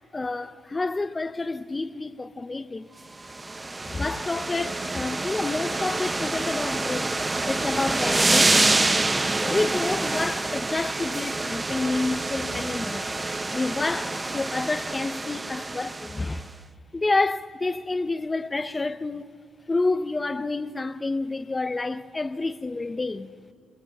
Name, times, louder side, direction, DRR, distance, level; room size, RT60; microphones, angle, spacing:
voice 1, 0.1-2.9 3.8-7.1 7.4-13.1 13.5-16.5 16.9-19.3 19.7-23.3, left 3 dB, 20° left, 0.7 m, -29 dB
sound 1, 3.2-16.4, right 2 dB, 20° right, 0.7 m, -27 dB
28.0 x 27.0 x 3.6 m
cardioid pair, 90°, 0 cm